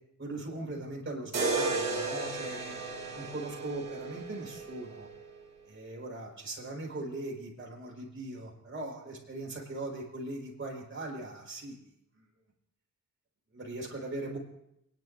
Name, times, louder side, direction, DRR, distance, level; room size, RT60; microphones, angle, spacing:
voice 1, 0.2-2.8 3.1-5.1 5.7-12.2 13.5-14.4, right 2 dB, 40° right, -2 dB, 5.0 m, -40 dB
sound 1, 1.3-5.4, right 3 dB, 55° right, 2.5 m, -34 dB
29.5 x 10.5 x 2.7 m, 0.81 s
wide cardioid pair, 115°, 32 cm